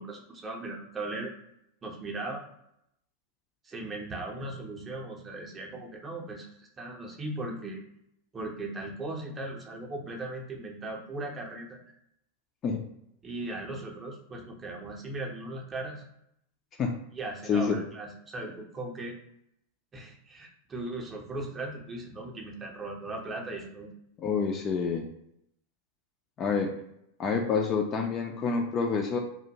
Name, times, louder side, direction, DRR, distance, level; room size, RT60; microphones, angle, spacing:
voice 1, 0.0-1.3 1.8-2.4 3.6-7.8 8.3-11.8 13.2-16.0 17.1-19.2 19.9-23.9, right 2 dB, 20° right, 0 dB, 0.6 m, -38 dB
voice 2, 17.5-17.8 24.2-25.1 26.4-26.7 27.2-29.2, left 5 dB, 30° left, 2 dB, 0.3 m, -27 dB
2.4 x 2.1 x 2.8 m, 0.77 s
figure-of-eight pair, 90°, 0 cm